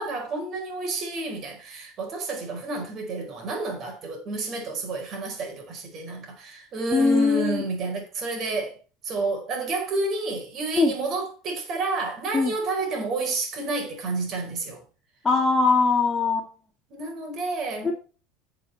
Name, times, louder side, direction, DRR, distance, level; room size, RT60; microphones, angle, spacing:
voice 1, 0.0-8.8 9.0-14.8 16.9-17.9, right 3 dB, 40° right, 4.5 m, -30 dB
voice 2, 6.9-7.6 10.8-10.9 12.3-12.5 15.2-16.5 17.8-17.9, left 4 dB, 15° left, 2.0 m, -21 dB
11.5 x 6.8 x 4.1 m
cardioid pair, 145°, 0 cm